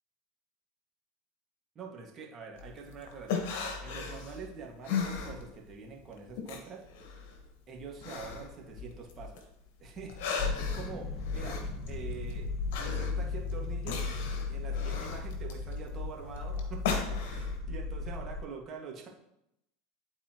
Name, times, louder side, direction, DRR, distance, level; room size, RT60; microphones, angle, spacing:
voice 1, 1.7-3.5 3.8-6.8 7.7-9.5 9.8-11.6 11.9-12.5 12.8-14.0 14.5-19.1, right 5 dB, 35° right, -1 dB, 1.8 m, -45 dB
sound 1, 2.6-5.9 6.2-9.5 9.8-17.6, left 6 dB, 70° left, 1.4 m, -37 dB
sound 2, 10.4-18.4, left 4 dB, 35° left, 1.7 m, -35 dB
11.5 x 4.2 x 3.0 m, 0.83 s
hypercardioid pair, 100°, 0 cm